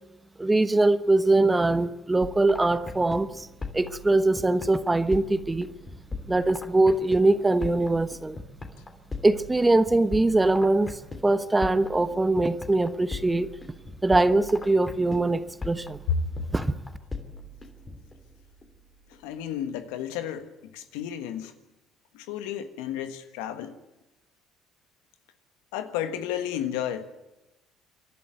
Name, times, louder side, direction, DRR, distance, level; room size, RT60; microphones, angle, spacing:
voice 1, 0.4-3.5 3.7-5.7 6.3-8.4 9.2-10.9 11.2-13.5 14.0-16.0 16.5-16.7, right 2 dB, 15° right, 1.1 m, -22 dB
sound 1, 2.2-19.8, left 3 dB, 25° left, 3.1 m, -41 dB
voice 2, 19.2-20.5 20.7-21.5 22.3-23.7 25.7-27.1, left 10 dB, 85° left, 1.5 m, -32 dB
28.0 x 12.0 x 9.4 m
supercardioid pair, 75°, 0 cm